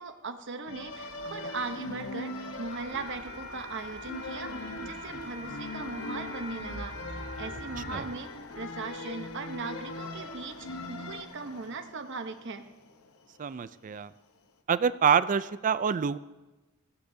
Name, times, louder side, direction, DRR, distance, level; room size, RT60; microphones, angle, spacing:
voice 1, 0.0-8.3 8.6-12.6, right 4 dB, 55° right, 8 dB, 0.9 m, -39 dB
sound 1, 0.7-11.2, left 2 dB, 70° left, 1.1 m, -41 dB
sound 2, 0.9-14.6, left 4 dB, 90° left, 0.9 m, -52 dB
sound 3, 2.7-8.0, left 1 dB, 45° left, 6.2 m, -43 dB
voice 2, 13.4-14.1 14.7-16.2, right 7 dB, 35° right, 15 dB, 0.4 m, -26 dB
20.0 x 15.5 x 2.7 m, 1.1 s
head